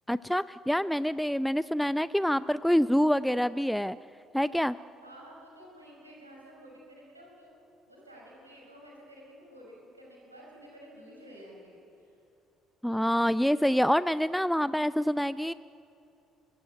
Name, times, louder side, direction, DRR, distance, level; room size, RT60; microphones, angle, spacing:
voice 1, 0.1-4.0 4.3-4.8 12.8-15.5, equal, ahead, 16 dB, 0.5 m, -26 dB
voice 2, 5.0-7.5 7.9-12.2, equal, 90° right, -2 dB, 5.6 m, -51 dB
24.5 x 21.5 x 9.4 m, 2.7 s
figure-of-eight pair, 50°, 0 cm